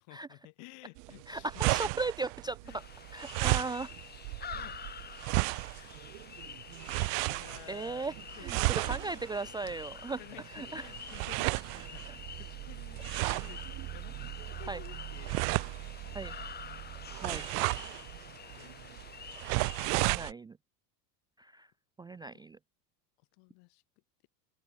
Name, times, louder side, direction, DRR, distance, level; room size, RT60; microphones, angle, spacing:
voice 1, 0.0-1.9 2.6-2.8 3.4-3.6 4.5-4.8 5.4-6.0 6.7-9.3 10.2-16.4 17.2-18.0 18.6-18.9 23.4-23.8, left 35 dB, 60° left, 3.1 m, -54 dB
sound 1, 1.0-20.3, right 35 dB, 60° right, 1.3 m, -34 dB
voice 2, 1.3-2.8 3.1-3.9 7.7-10.2 10.5-10.9 12.1-12.2 14.7-14.8 16.1-16.3 17.0-17.5 18.4-18.7 19.9-20.6 21.4-21.7 22.0-22.6, right 3 dB, 10° right, 0.5 m, -37 dB
sound 2, 2.7-20.0, left 7 dB, 20° left, 1.8 m, -48 dB
sound 3, 10.8-18.6, right 18 dB, 45° right, 3.2 m, -45 dB
supercardioid pair, 135°, 48 cm